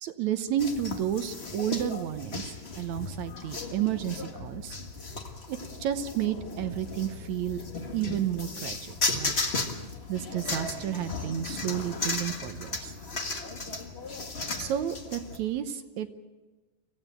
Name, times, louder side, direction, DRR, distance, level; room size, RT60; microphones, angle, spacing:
voice 1, 0.0-4.8 5.5-7.6 7.9-9.6 10.1-12.9 14.6-16.1, right 10 dB, 70° right, 10 dB, 2.0 m, -31 dB
sound 1, 0.6-15.4, left 3 dB, 45° left, 0.7 m, -35 dB
25.0 x 15.5 x 9.0 m, 1.3 s
omnidirectional pair, 3.9 m